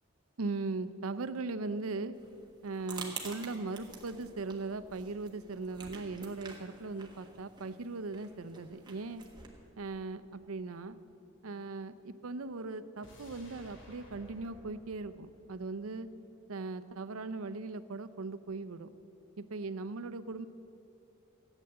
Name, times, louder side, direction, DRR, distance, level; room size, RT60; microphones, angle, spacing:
voice 1, 0.4-2.2 2.6-9.2 9.8-11.0 11.4-16.1 16.5-18.9 19.4-20.5, right 3 dB, 85° right, 13 dB, 0.6 m, -39 dB
sound 1, 2.1-9.5, right 4 dB, 20° right, 1.5 m, -49 dB
sound 2, 13.0-16.2 16.5-16.6, equal, 60° left, 2.4 m, -56 dB
14.5 x 9.1 x 7.8 m, 2.9 s
head